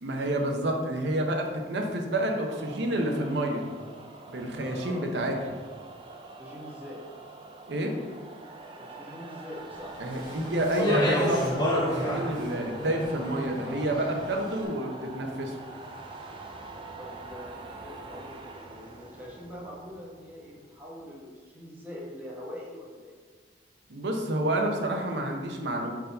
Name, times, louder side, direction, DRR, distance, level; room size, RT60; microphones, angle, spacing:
voice 1, 0.0-3.7 4.3-5.6 7.7-8.0 10.0-15.6 23.9-25.9, right 1 dB, 70° right, 2 dB, 0.8 m, -29 dB
sound 1, 2.5-21.0, right 3 dB, 30° right, 0.5 m, -44 dB
voice 2, 4.6-5.1 6.4-7.0 8.9-10.0 17.0-23.2, left 1 dB, 10° right, -5 dB, 1.2 m, -43 dB
Speech, 10.1-14.4, equal, 25° left, 1.2 m, -30 dB
4.6 x 3.9 x 5.4 m, 1.5 s
head